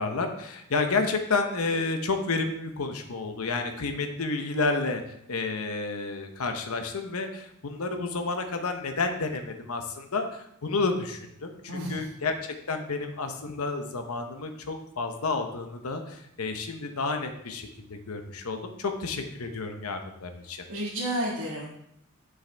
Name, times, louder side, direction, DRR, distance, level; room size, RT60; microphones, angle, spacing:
voice 1, 0.0-5.0 5.3-11.5 11.9-20.7, left 3 dB, 85° left, 6 dB, 0.9 m, -30 dB
voice 2, 11.7-12.1 20.7-21.6, right 1 dB, 90° right, -6 dB, 1.7 m, -31 dB
7.6 x 6.2 x 3.4 m, 0.75 s
head